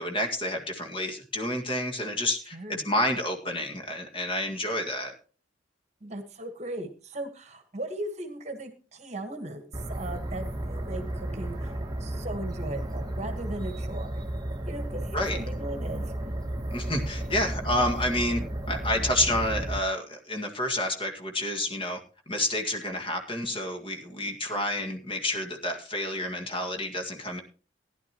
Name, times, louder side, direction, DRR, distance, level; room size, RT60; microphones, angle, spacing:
voice 1, 0.0-5.1 15.1-15.4 16.7-18.4 18.7-22.0 22.3-27.4, left 1 dB, 25° left, 4 dB, 1.9 m, -29 dB
voice 2, 2.5-2.9 6.0-14.2 14.7-16.1, right 1 dB, 35° right, 7 dB, 1.4 m, -38 dB
sound 1, 9.7-19.8, right 1 dB, 20° right, 1.1 m, -33 dB
16.0 x 11.0 x 3.0 m, 0.37 s
head